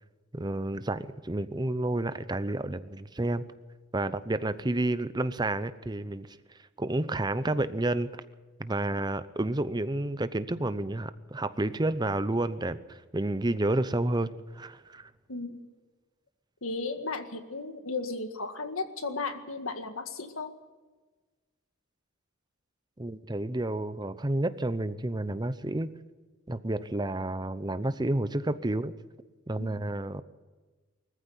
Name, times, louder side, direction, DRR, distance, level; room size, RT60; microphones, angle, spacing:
voice 1, 0.3-3.4 3.9-6.4 6.8-8.1 8.6-15.1 23.0-25.9 26.5-28.9 29.5-30.2, right 2 dB, 20° right, 13 dB, 0.7 m, -30 dB
voice 2, 15.3-15.7 16.6-20.5 29.6-29.7, left 3 dB, 90° left, 7 dB, 1.9 m, -35 dB
20.5 x 14.5 x 9.5 m, 1.3 s
head